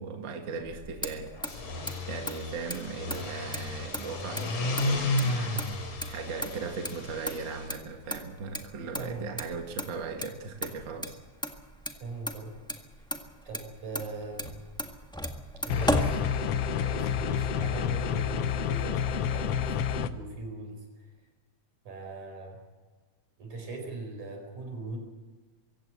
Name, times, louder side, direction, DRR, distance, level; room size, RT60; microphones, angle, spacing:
voice 1, 0.0-1.8 2.1-5.7 6.0-11.2, right 4 dB, 40° right, 4 dB, 2.2 m, -38 dB
Motor vehicle (road), 0.6-16.9, equal, 5° left, 0.7 m, -37 dB
sound 1, 1.4-7.7, left 2 dB, 80° left, 4.7 m, -33 dB
voice 2, 9.0-9.5 12.0-12.6 13.5-14.5 15.6-21.1 21.8-22.6 23.4-25.0, right 3 dB, 75° right, 3 dB, 6.3 m, -40 dB
sound 2, 15.7-20.1, left 8 dB, 65° left, 1.6 m, -29 dB
24.0 x 16.0 x 7.8 m, 1.3 s
omnidirectional pair, 3.4 m